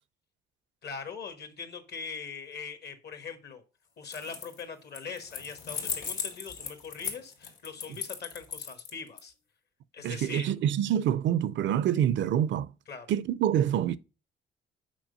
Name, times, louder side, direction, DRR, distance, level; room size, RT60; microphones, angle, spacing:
voice 1, 0.8-3.6 4.0-9.3 9.9-10.5 12.9-13.1, left 5 dB, 55° left, 1.4 m, -41 dB
sound 1, 4.0-4.6 4.9-9.2, left 6 dB, 75° left, 2.0 m, -37 dB
voice 2, 10.0-12.7 13.1-14.0, right 10 dB, 70° right, 0.5 m, -26 dB
6.1 x 4.7 x 5.2 m
cardioid pair, 90°, 20 cm